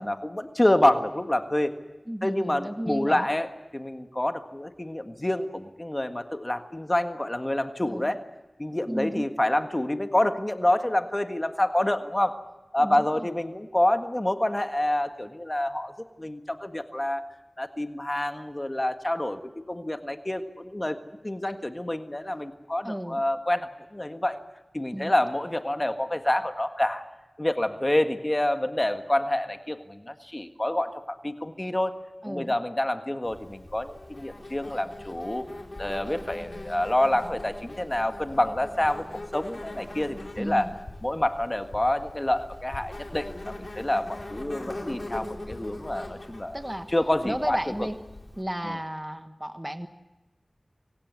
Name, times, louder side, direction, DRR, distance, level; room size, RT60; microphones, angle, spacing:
voice 1, 0.0-1.8 2.2-8.2 8.6-12.4 12.7-15.9 16.2-17.2 17.6-19.4 19.7-21.0 21.2-24.4 24.7-27.0 27.4-31.9 32.3-35.4 35.8-39.1 39.3-40.7 41.0-46.6 46.9-47.9 48.6-48.8, left 1 dB, 25° left, 7 dB, 1.6 m, -27 dB
voice 2, 2.1-3.3 7.8-8.1 8.9-9.3 12.8-13.3 22.8-23.2 24.9-25.1 32.2-32.5 40.4-40.8 46.5-46.9 47.2-48.0 48.4-49.9, equal, 15° right, 8 dB, 1.3 m, -33 dB
Insect, 33.2-48.4, left 1 dB, 55° left, 4.1 m, -41 dB
26.0 x 15.5 x 9.5 m, 1.1 s
wide cardioid pair, 60°, 0 cm